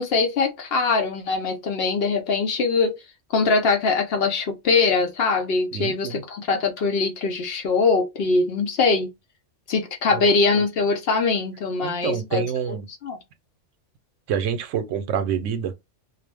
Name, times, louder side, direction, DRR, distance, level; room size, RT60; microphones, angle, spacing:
voice 1, 0.0-3.0 3.3-9.1 9.7-12.4 13.0-13.2, left 4 dB, 60° left, 0.8 m, -22 dB
voice 2, 5.7-6.2 10.1-10.3 11.8-12.9 14.3-15.7, right 8 dB, 85° right, 0.9 m, -27 dB
2.4 x 2.0 x 3.3 m
omnidirectional pair, 1.2 m